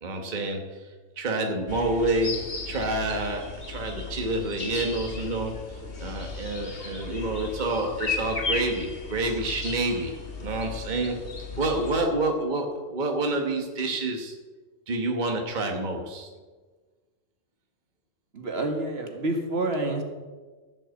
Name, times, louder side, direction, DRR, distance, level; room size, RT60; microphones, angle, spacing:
voice 1, 0.0-0.9 1.2-10.1 10.4-11.2 11.6-14.3 14.9-16.3, right 2 dB, 40° right, 2 dB, 1.4 m, -28 dB
sound 1, 1.7-12.1, left 4 dB, 55° left, 1.7 m, -35 dB
voice 2, 18.3-20.0, right 2 dB, 60° right, 4 dB, 1.8 m, -28 dB
15.0 x 6.1 x 8.2 m, 1.4 s
omnidirectional pair, 1.2 m